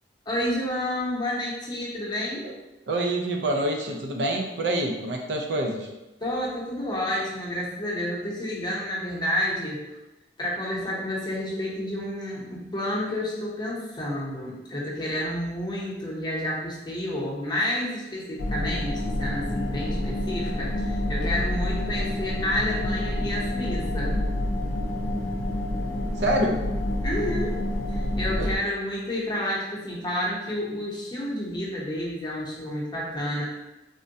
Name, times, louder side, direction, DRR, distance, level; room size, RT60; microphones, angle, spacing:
voice 1, 0.3-2.5 6.2-9.8 10.4-24.2 27.0-27.6 27.9-33.4, left 1 dB, 25° left, -5 dB, 0.7 m, -30 dB
voice 2, 2.9-5.9 26.2-26.6 28.4-28.5, right 1 dB, 70° right, 2 dB, 0.4 m, -26 dB
sound 1, 18.4-28.6, left 1 dB, 70° left, 0.4 m, -28 dB
3.6 x 2.1 x 2.6 m, 1.0 s
head